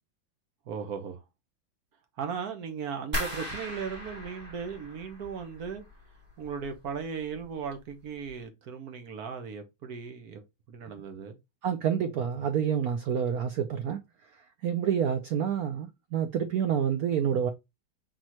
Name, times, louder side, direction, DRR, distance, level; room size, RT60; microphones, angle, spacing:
voice 1, 0.7-1.2 2.2-5.8 6.4-11.4, right 6 dB, 55° right, 1.3 m, -37 dB
sound 1, 3.1-6.0 6.3-7.0 7.3-7.8 8.2-8.3, left 1 dB, 25° right, 2.1 m, -38 dB
voice 2, 11.6-14.0 14.6-17.5, right 8 dB, 80° right, 0.8 m, -28 dB
4.9 x 3.6 x 2.9 m
omnidirectional pair, 2.2 m